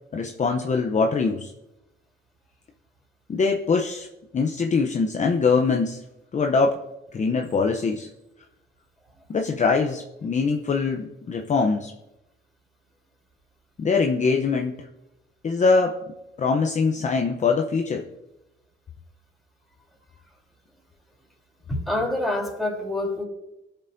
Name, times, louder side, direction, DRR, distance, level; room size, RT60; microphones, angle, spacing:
voice 1, 0.1-1.5 3.3-4.1 4.3-6.0 6.3-6.8 7.1-8.1 9.3-11.9 13.8-14.9 15.4-16.0 16.4-18.1, left 4 dB, 35° left, 3 dB, 0.7 m, -23 dB
voice 2, 21.7-23.2, left 1 dB, ahead, -1 dB, 3.3 m, -26 dB
16.5 x 6.8 x 2.7 m, 0.94 s
cardioid pair, 90°, 20 cm